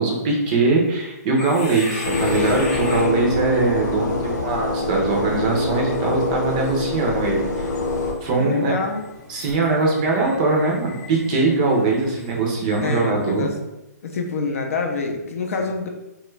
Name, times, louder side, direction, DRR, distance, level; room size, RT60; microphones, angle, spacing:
voice 1, 0.0-7.7 8.2-8.7 9.3-13.5, right 3 dB, 25° right, 0 dB, 0.5 m, -21 dB
sound 1, 1.3-13.5, left 1 dB, 15° left, 0.9 m, -39 dB
sound 2, 2.0-8.1, left 2 dB, 80° left, 0.7 m, -24 dB
voice 2, 8.4-9.0 12.8-13.5 14.0-15.9, left 4 dB, 50° left, 3 dB, 0.5 m, -26 dB
2.9 x 2.3 x 3.1 m, 0.95 s
hypercardioid pair, 165°, 9 cm